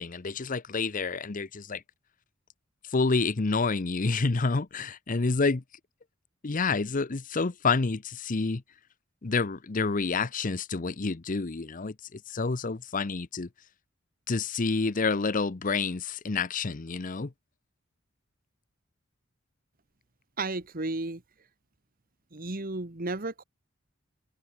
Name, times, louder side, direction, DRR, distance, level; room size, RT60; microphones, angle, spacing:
voice 1, 0.0-1.8 2.9-5.6 6.4-8.6 9.2-13.5 14.3-17.3, left 4 dB, 40° left, 0.7 m, -28 dB
voice 2, 20.4-21.2 22.3-23.4, right 2 dB, 45° right, 1.8 m, -33 dB
open air
head